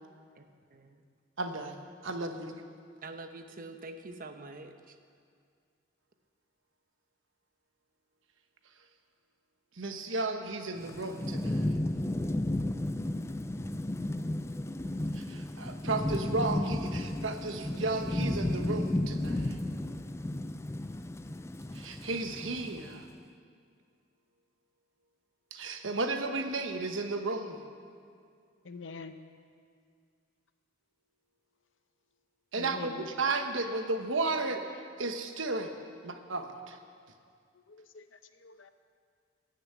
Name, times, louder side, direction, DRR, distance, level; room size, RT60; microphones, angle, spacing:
voice 1, 0.4-1.0 3.0-5.0, right 2 dB, 50° right, 7 dB, 0.9 m, -46 dB
voice 2, 1.4-2.6 9.8-11.8 15.1-19.6 21.7-23.1 25.5-27.6 32.5-32.9 33.2-34.6 35.0-35.7 36.0-36.8, right 3 dB, 90° right, 6 dB, 1.1 m, -34 dB
Thunderstorm / Rain, 10.8-23.0, left 1 dB, 15° left, 0.4 m, -33 dB
voice 3, 28.6-29.2 32.6-33.1 35.6-35.8 36.5-36.7 37.5-38.7, left 4 dB, 75° left, 9 dB, 0.8 m, -46 dB
16.5 x 7.1 x 8.2 m, 2.2 s
head